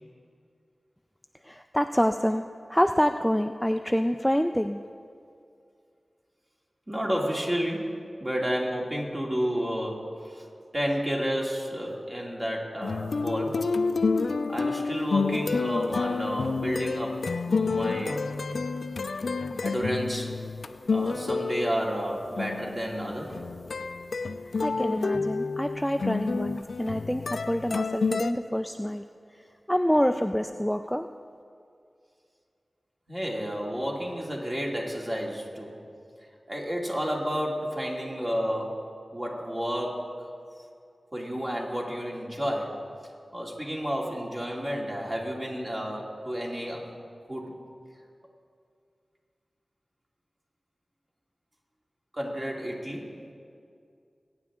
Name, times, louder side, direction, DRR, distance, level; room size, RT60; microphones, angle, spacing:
voice 1, 1.4-2.4 2.7-4.8 24.6-29.0 29.7-31.1, equal, 5° left, 7 dB, 0.4 m, -26 dB
voice 2, 6.9-10.5 10.7-13.6 14.5-18.2 19.6-20.4 20.9-23.4 33.1-35.8 36.5-38.8 39.1-40.0 41.1-42.9 43.3-47.0 47.3-47.5 52.1-53.1, equal, 30° right, -2 dB, 2.7 m, -31 dB
sound 1, 12.8-28.3, left 4 dB, 85° left, 0.4 m, -29 dB
22.0 x 9.7 x 3.7 m, 2.3 s
wide cardioid pair, 55°, 0 cm